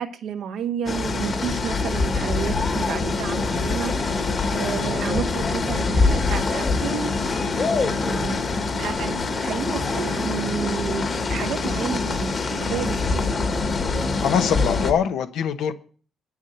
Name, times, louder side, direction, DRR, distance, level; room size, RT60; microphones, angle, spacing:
voice 1, 0.0-4.2 4.5-7.1 8.0-8.5 8.8-13.3, right 7 dB, 75° right, 6 dB, 1.3 m, -31 dB
sound 1, 0.9-14.9, left 3 dB, 40° left, 1.5 m, -24 dB
voice 2, 14.2-15.7, left 8 dB, 80° left, 9 dB, 1.0 m, -23 dB
9.1 x 7.2 x 8.0 m, 0.43 s
cardioid pair, 90°, 0 cm